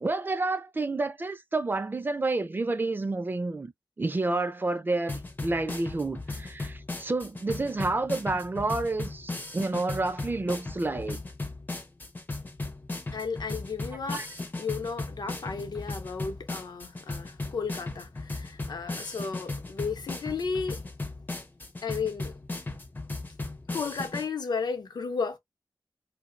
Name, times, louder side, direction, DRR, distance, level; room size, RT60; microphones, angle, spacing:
voice 1, 0.0-3.7 4.0-11.2 14.1-14.3, right 2 dB, 30° right, 0.4 m, -29 dB
sound 1, 5.1-24.3, left 2 dB, 25° left, 0.5 m, -37 dB
voice 2, 13.1-14.2 14.6-20.8 21.8-22.3 23.7-25.4, left 5 dB, 75° left, 0.6 m, -33 dB
2.6 x 2.0 x 2.5 m
wide cardioid pair, 90°, 7 cm